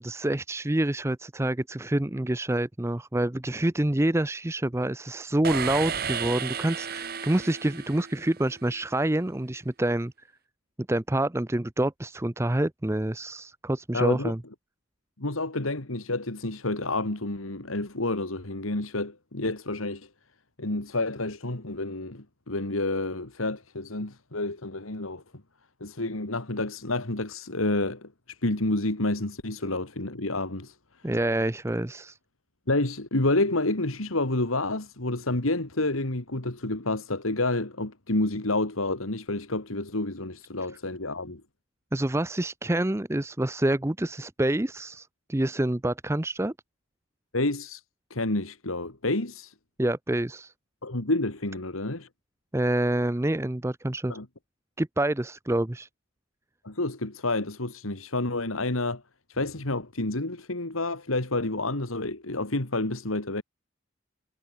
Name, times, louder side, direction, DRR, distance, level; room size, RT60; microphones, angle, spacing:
voice 1, 0.0-10.1 10.9-14.4 31.0-32.2 41.9-46.5 49.8-50.5 52.5-54.1 54.8-55.9, right 1 dB, 15° right, 0.6 m, -27 dB
sound 1, 5.4-8.6, right 6 dB, 45° right, 1.7 m, -33 dB
voice 2, 13.9-14.3 15.2-20.1 20.6-25.2 25.8-28.1 28.4-30.7 32.7-41.4 47.3-47.8 48.1-49.5 50.8-52.1 54.1-54.2 56.6-59.0 59.3-63.4, left 2 dB, 90° left, 2.7 m, -29 dB
head